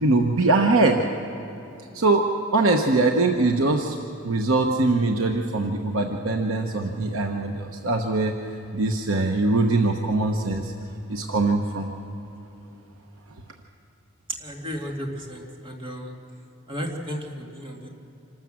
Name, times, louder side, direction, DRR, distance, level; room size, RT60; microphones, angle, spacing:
voice 1, 0.0-1.0 1.9-2.3 2.5-4.0 4.2-8.3 8.7-10.7 11.1-11.9, right 2 dB, 90° right, 3 dB, 1.1 m, -22 dB
voice 2, 14.4-16.1 16.7-17.9, equal, 25° right, 0 dB, 2.4 m, -34 dB
26.5 x 13.0 x 7.6 m, 2.9 s
head